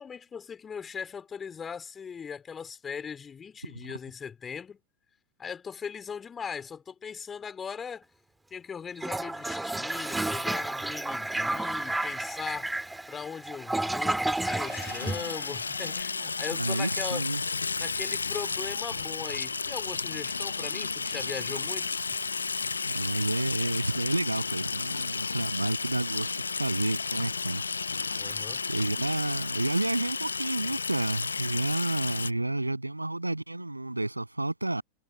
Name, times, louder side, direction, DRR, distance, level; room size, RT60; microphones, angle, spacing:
voice 1, 0.0-4.8 5.4-8.1 8.5-12.7 13.1-17.3 17.8-22.1 28.2-28.6, left 6 dB, 20° left, 4.6 m, -39 dB
Toilet flush, 9.0-15.9, right 2 dB, 5° right, 2.4 m, -31 dB
Water tap faucet / Sink (filling or washing), 14.4-32.3, left 4 dB, 75° left, 1.1 m, -33 dB
voice 2, 16.6-17.4 21.3-21.4 22.8-27.6 28.0-34.8, right 2 dB, 85° right, 8.0 m, -30 dB
figure-of-eight pair, 90°, 0 cm